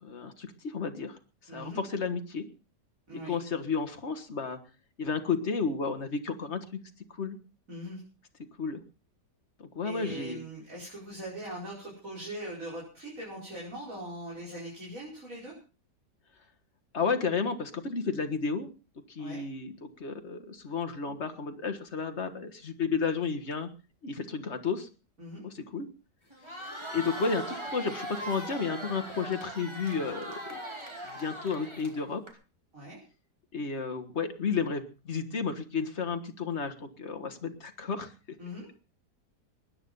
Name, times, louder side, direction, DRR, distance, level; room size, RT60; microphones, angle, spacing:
voice 1, 0.0-1.2 1.5-2.5 3.1-4.6 5.0-6.8 7.1-7.4 8.6-8.8 9.6-10.4 16.9-18.7 19.1-23.7 24.0-24.9 25.4-25.9 26.9-30.6 31.1-32.2 33.5-38.1, left 5 dB, 40° left, 7 dB, 1.8 m, -32 dB
voice 2, 1.5-1.8 3.1-3.4 7.7-8.0 9.8-15.5 19.2-19.4 25.2-25.5 32.7-33.0 38.4-38.7, right 1 dB, 50° right, -4 dB, 5.7 m, -41 dB
Crowd, 26.3-32.3, right 1 dB, 15° right, 2.6 m, -40 dB
21.0 x 9.9 x 5.4 m, 0.34 s
omnidirectional pair, 1.8 m